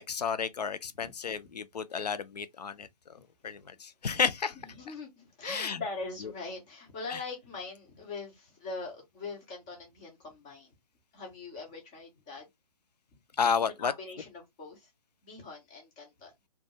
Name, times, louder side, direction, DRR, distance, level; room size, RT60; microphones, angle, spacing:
voice 1, 0.1-2.9 3.4-4.5 5.4-5.8 7.1-7.2 13.4-13.9, left 6 dB, 75° left, 0.4 m, -31 dB
voice 2, 4.6-10.7 11.1-12.4 13.8-14.9 15.2-16.3, left 3 dB, 10° left, 0.3 m, -42 dB
2.2 x 2.2 x 2.7 m
figure-of-eight pair, 145°, 21 cm